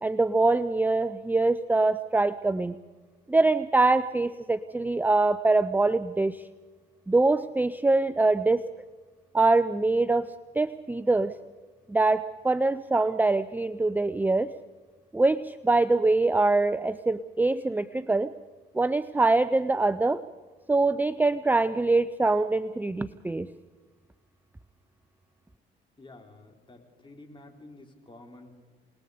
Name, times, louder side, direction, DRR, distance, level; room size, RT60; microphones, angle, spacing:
voice 1, 0.0-2.8 3.3-6.4 7.1-8.7 9.3-11.4 11.9-14.5 15.1-18.3 18.7-20.2 20.7-23.5, right 3 dB, 10° right, 14 dB, 0.6 m, -24 dB
voice 2, 26.0-28.5, left 2 dB, 25° left, 3 dB, 4.1 m, -50 dB
27.5 x 20.0 x 5.0 m, 1.4 s
cardioid pair, 90°, 20 cm